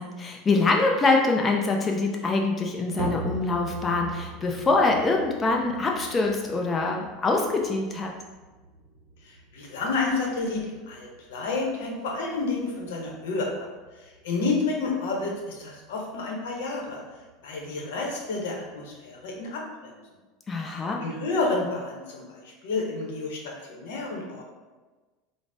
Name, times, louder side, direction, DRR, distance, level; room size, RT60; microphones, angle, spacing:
voice 1, 0.0-8.1 20.5-21.0, left 3 dB, 25° left, 1 dB, 0.4 m, -24 dB
sound 1, 3.0-19.4, right 2 dB, 70° right, 0.6 m, -43 dB
voice 2, 9.2-13.7 14.0-17.0 17.4-19.9 21.0-24.4, left 3 dB, 80° left, 0 dB, 0.8 m, -30 dB
5.0 x 2.0 x 2.6 m, 1.3 s
supercardioid pair, 120°, 0 cm